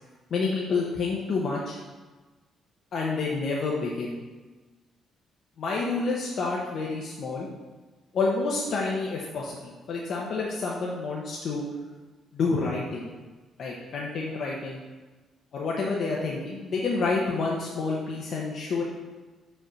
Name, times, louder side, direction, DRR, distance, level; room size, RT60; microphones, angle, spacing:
voice 1, 0.3-1.8 2.9-4.2 5.6-7.5 8.1-11.6 12.3-13.1 13.6-14.8 15.5-18.8, left 3 dB, 60° left, -4 dB, 1.0 m, -29 dB
5.6 x 4.4 x 6.2 m, 1.3 s
cardioid pair, 90°, 0 cm